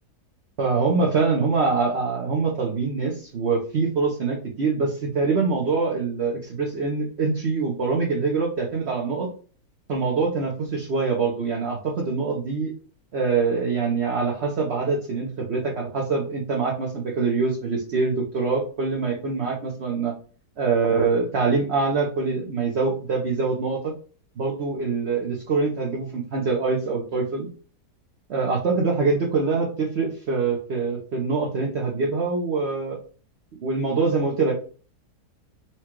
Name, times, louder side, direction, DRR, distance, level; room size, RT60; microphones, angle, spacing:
voice 1, 0.6-9.3 9.9-12.7 13.1-20.1 20.6-23.9 24.4-27.5 28.3-33.0 33.6-34.5, right 4 dB, 50° right, -1 dB, 0.9 m, -24 dB
4.4 x 2.4 x 4.5 m, 0.39 s
omnidirectional pair, 1.8 m